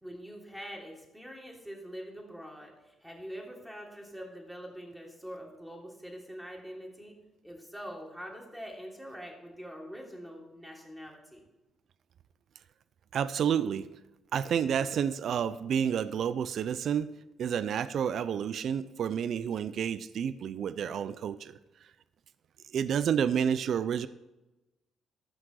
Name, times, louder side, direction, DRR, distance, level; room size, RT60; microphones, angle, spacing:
voice 1, 0.0-7.2 7.4-11.4, equal, 5° right, -1 dB, 3.1 m, -44 dB
voice 2, 13.1-13.9 14.3-17.1 17.4-21.9 22.7-24.1, right 8 dB, 65° right, 15 dB, 0.5 m, -30 dB
14.0 x 6.0 x 6.4 m, 1.0 s
cardioid pair, 90°, 0 cm